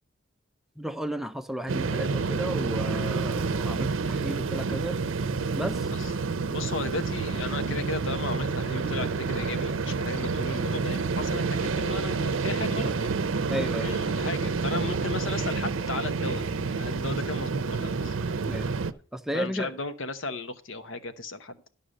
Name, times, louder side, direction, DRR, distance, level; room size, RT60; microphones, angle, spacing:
voice 1, 0.8-5.0 5.6-5.9 13.5-13.9 18.5-18.7 19.1-19.8, equal, ahead, 9 dB, 0.4 m, -33 dB
sound 1, 1.7-18.9, right 4 dB, 75° right, 0.6 m, -29 dB
voice 2, 6.5-18.2 19.3-21.6, left 3 dB, 75° left, 10 dB, 1.0 m, -35 dB
11.5 x 5.5 x 6.4 m, 0.41 s
head